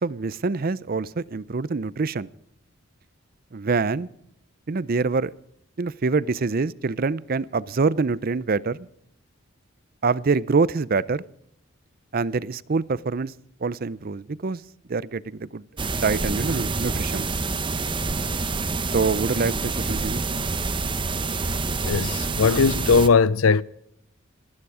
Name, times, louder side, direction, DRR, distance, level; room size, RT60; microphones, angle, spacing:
voice 1, 0.0-2.3 3.5-4.1 4.7-5.3 5.8-8.9 10.0-11.2 12.1-13.3 13.6-14.6 14.9-15.6 16.0-17.3 18.9-20.3, right 4 dB, 45° right, 0.5 m, -25 dB
sound 1, 15.8-23.1, right 3 dB, 25° right, 0.9 m, -27 dB
voice 2, 21.8-23.6, left 5 dB, 85° left, 0.6 m, -19 dB
26.0 x 9.7 x 4.9 m
head